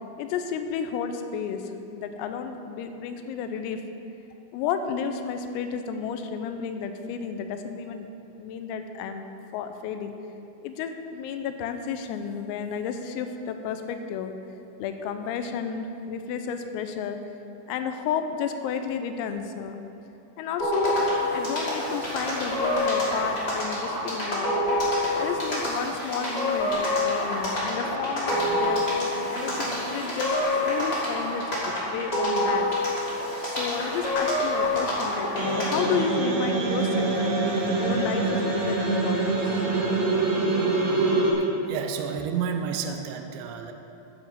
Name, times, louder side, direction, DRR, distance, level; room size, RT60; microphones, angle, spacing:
voice 1, 0.2-3.8 4.5-8.1 8.4-10.1 10.6-14.3 14.8-17.2 17.7-19.8 20.4-21.0 21.3-24.6 25.2-28.9 29.3-30.3 30.7-32.7 33.5-37.2 37.8-39.6, left 7 dB, 85° left, 7 dB, 3.4 m, -32 dB
sound 1, 20.6-36.0, left 1 dB, 25° left, 1.3 m, -27 dB
sound 2, 35.4-41.3, right 3 dB, 65° right, 3.6 m, -25 dB
voice 2, 41.4-43.7, right 7 dB, 85° right, 5 dB, 2.5 m, -31 dB
10.0 x 9.9 x 7.2 m, 2.9 s
omnidirectional pair, 6.0 m